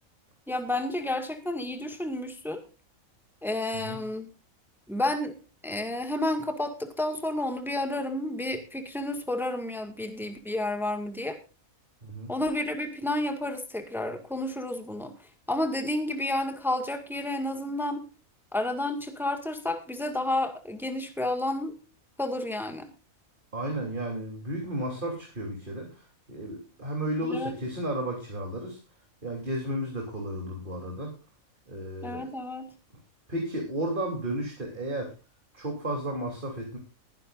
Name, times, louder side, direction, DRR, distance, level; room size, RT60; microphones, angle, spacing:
voice 1, 0.5-2.6 3.4-4.3 4.9-5.4 5.6-11.4 12.3-15.1 15.5-18.0 18.5-21.8 22.2-22.9 27.3-27.5 32.0-32.7, left 1 dB, ahead, 6 dB, 1.8 m, -31 dB
voice 2, 12.0-12.3 23.5-28.8 29.2-31.1 31.7-32.3 33.3-35.1 35.5-36.8, right 1 dB, 35° right, 0 dB, 3.5 m, -33 dB
20.5 x 11.5 x 2.5 m, 0.31 s
omnidirectional pair, 1.4 m